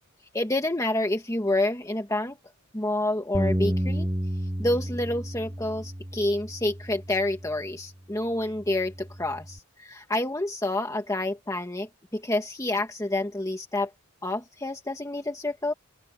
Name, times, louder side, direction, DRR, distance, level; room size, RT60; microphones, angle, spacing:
voice 1, 0.3-2.4 2.7-4.1 4.6-13.9 14.2-15.7, left 1 dB, 15° left, 1.6 m, -28 dB
Bass guitar, 3.3-7.8 8.4-9.6, right 1 dB, 15° right, 1.2 m, -31 dB
open air
head